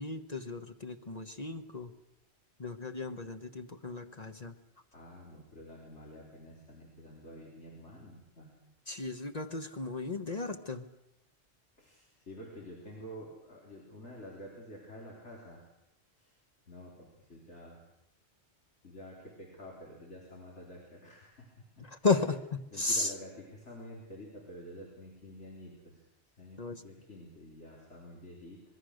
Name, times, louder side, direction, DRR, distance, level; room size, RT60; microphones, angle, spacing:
voice 1, 0.0-1.9 2.6-4.5 8.9-10.9 21.8-23.1 26.6-26.8, left 3 dB, 35° left, 6 dB, 1.2 m, -34 dB
voice 2, 4.9-8.5 11.8-15.6 16.2-16.4 16.7-17.8 18.8-21.9 22.7-26.0 26.4-28.6, equal, 90° left, -4 dB, 4.4 m, -49 dB
25.0 x 21.0 x 6.5 m, 0.84 s
omnidirectional pair, 1.2 m